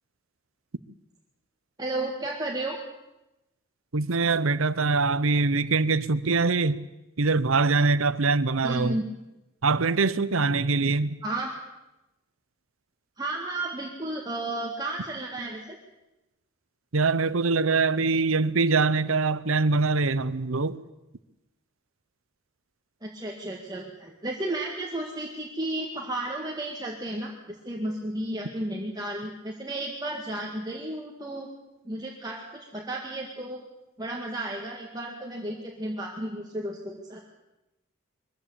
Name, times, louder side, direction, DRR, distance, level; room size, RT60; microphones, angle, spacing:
voice 1, 1.8-2.8 8.6-9.0 11.2-11.5 13.2-15.8 23.0-31.5 31.8-33.6 34.0-37.2, right 1 dB, 20° right, -1 dB, 1.9 m, -33 dB
voice 2, 3.9-6.8 7.2-9.0 9.6-11.1 16.9-20.8, right 4 dB, 80° right, 16 dB, 0.8 m, -23 dB
22.5 x 14.5 x 8.7 m, 0.98 s
head